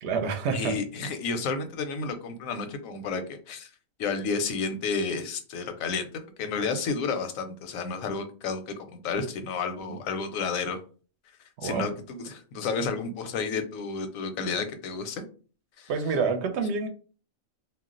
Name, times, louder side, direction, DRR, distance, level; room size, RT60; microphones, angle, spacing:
voice 1, 0.0-0.7 9.9-10.0 11.6-11.9 15.9-16.9, right 5 dB, 65° right, 6 dB, 0.8 m, -27 dB
voice 2, 0.5-3.7 4.0-10.8 11.6-15.2 15.8-16.2, left 4 dB, 90° left, 8 dB, 1.0 m, -31 dB
2.4 x 2.0 x 3.7 m, 0.38 s
omnidirectional pair, 1.4 m